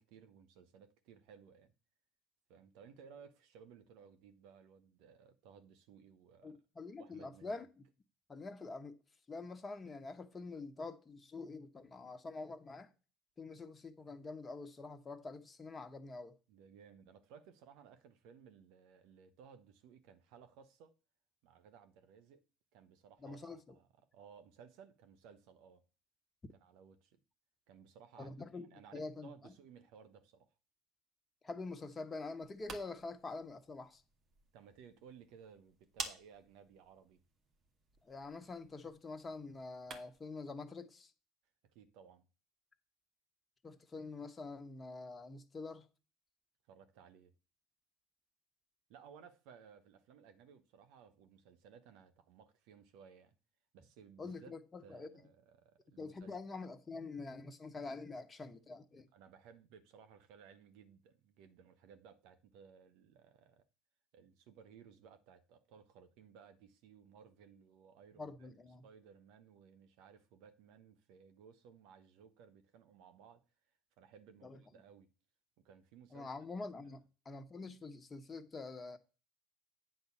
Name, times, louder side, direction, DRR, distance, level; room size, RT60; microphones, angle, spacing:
voice 1, 0.0-1.7 2.5-6.6 7.0-7.6 16.5-20.9 21.4-22.4 22.7-25.8 26.6-27.2 27.7-28.3 28.7-30.5 34.5-37.2 41.7-42.3 46.7-47.3 48.9-53.4 53.7-54.6 54.8-56.4 59.1-63.7 64.1-73.4 74.0-75.1 75.6-76.3 76.8-76.9, right 7 dB, 70° right, 1.2 m, -59 dB
voice 2, 6.4-7.7 8.3-9.0 9.3-12.9 13.4-16.3 23.2-23.7 26.4-26.5 28.2-29.5 31.4-34.0 38.0-41.1 43.6-45.9 54.2-55.1 56.0-59.1 68.2-68.8 74.4-74.6 76.1-79.0, left 3 dB, 25° left, 1.2 m, -46 dB
sound 1, 32.4-40.3, right 4 dB, 45° right, 1.9 m, -52 dB
9.0 x 4.0 x 7.2 m
hypercardioid pair, 75°, 0 cm